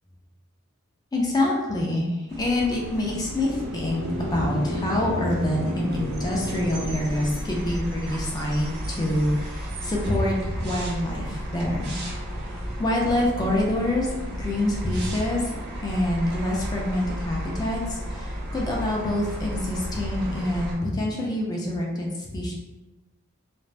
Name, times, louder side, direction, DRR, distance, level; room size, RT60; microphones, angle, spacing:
voice 1, 1.1-12.0 12.4-12.5 12.8-14.1 14.4-15.5 15.8-22.5, left 1 dB, 20° left, -3 dB, 0.4 m, -26 dB
sound 1, 2.3-20.8, equal, 50° right, 0.5 m, -34 dB
sound 2, 2.8-7.8, left 1 dB, 70° right, 0.9 m, -32 dB
2.5 x 2.0 x 3.2 m, 1.1 s
head